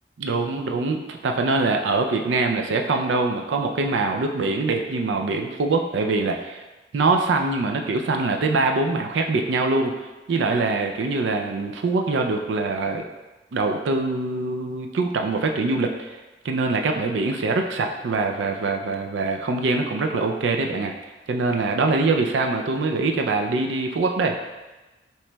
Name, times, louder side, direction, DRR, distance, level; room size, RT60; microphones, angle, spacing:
voice 1, 0.2-6.6 6.9-9.9 10.3-13.0 13.5-16.2 16.4-20.9 21.3-24.4, right 3 dB, 75° right, 3 dB, 0.4 m, -23 dB
5.6 x 3.1 x 2.2 m, 1.1 s
head